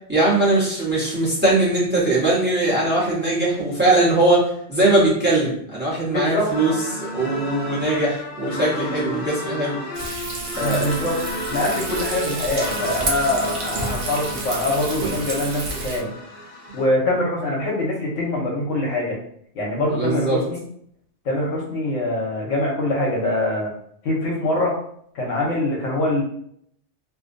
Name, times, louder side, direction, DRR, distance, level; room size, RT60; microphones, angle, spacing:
voice 1, 0.1-9.8 10.6-10.9 19.9-20.4, right 2 dB, 10° right, -7 dB, 0.8 m, -20 dB
voice 2, 6.0-6.5 10.6-11.2 11.5-16.1 16.7-19.2 19.5-20.6 21.2-23.7 24.0-24.8 25.1-26.2, left 1 dB, 80° left, -2 dB, 1.1 m, -24 dB
sound 1, 6.4-16.9, equal, 55° left, 0.7 m, -32 dB
Frying (food), 9.9-16.0, right 3 dB, 80° right, 1.0 m, -30 dB
2.6 x 2.1 x 2.5 m, 0.67 s
omnidirectional pair, 1.3 m